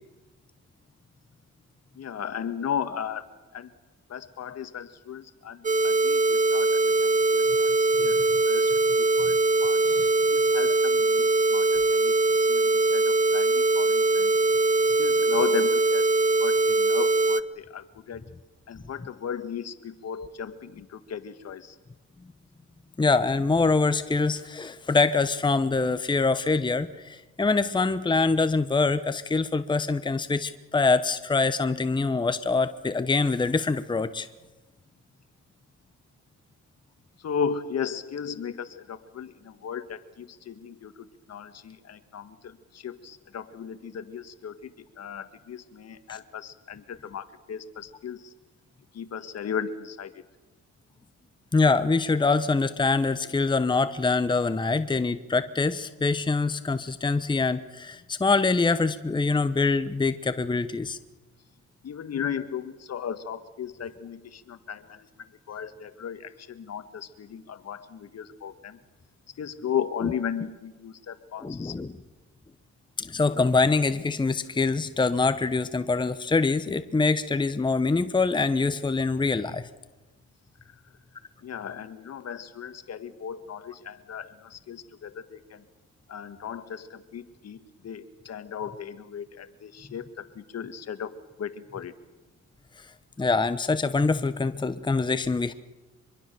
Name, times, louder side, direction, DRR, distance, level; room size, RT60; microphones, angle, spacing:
voice 1, 2.0-3.3 3.5-3.7 4.1-9.8 10.3-14.3 14.9-16.1 16.4-18.2 18.7-21.8 37.2-48.3 48.9-50.2 61.8-68.8 69.4-71.8 81.4-85.6 86.1-91.9, left 7 dB, 55° left, 11 dB, 1.7 m, -36 dB
sound 1, 5.6-17.4, right 2 dB, 25° right, 1.0 m, -22 dB
voice 2, 23.0-34.3 46.1-46.2 51.5-61.0 70.0-70.1 71.4-71.9 73.0-79.7 93.2-95.5, left 3 dB, 15° left, 11 dB, 0.9 m, -24 dB
24.5 x 23.0 x 6.9 m, 1.1 s
cardioid pair, 90°, 30 cm